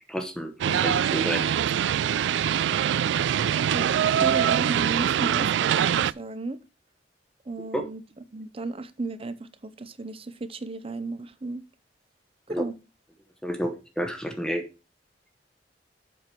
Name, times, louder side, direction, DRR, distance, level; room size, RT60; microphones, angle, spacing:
voice 1, 0.1-1.8 3.8-3.9 4.2-4.3 7.7-7.8 12.5-12.6 13.4-14.6, equal, 5° left, 0.9 m, -31 dB
sound 1, 0.6-6.1, right 9 dB, 75° right, 0.3 m, -23 dB
voice 2, 4.2-6.6 7.5-8.0 8.3-11.6 12.5-12.7, right 3 dB, 30° right, 0.7 m, -34 dB
7.8 x 5.8 x 4.6 m
head